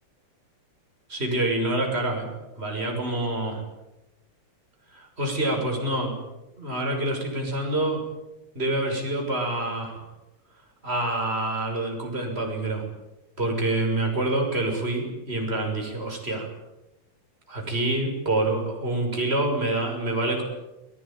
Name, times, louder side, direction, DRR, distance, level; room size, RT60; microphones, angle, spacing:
voice 1, 1.1-2.3 2.6-3.6 4.9-6.1 6.6-8.0 8.5-10.0 10.8-12.8 13.4-16.5 17.5-20.4, right 2 dB, 25° right, 1 dB, 6.8 m, -26 dB
29.0 x 20.0 x 9.2 m, 0.95 s
omnidirectional pair, 2.3 m